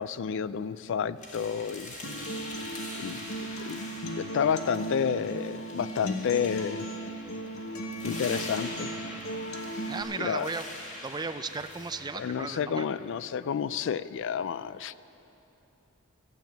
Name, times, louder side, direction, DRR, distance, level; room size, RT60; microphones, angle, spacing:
voice 1, 0.0-1.9 3.0-3.2 3.7-3.8 4.2-6.9 8.0-8.9 10.2-10.5 12.2-15.0, left 7 dB, 60° left, 16 dB, 0.3 m, -30 dB
sound 1, 1.2-13.1, left 1 dB, 35° left, 1.9 m, -44 dB
Acoustic guitar, 2.0-10.0, right 1 dB, 85° left, 1.2 m, -37 dB
voice 2, 9.9-10.7 11.0-12.9, right 4 dB, 20° right, 10 dB, 0.4 m, -35 dB
15.0 x 7.3 x 9.0 m, 2.9 s
head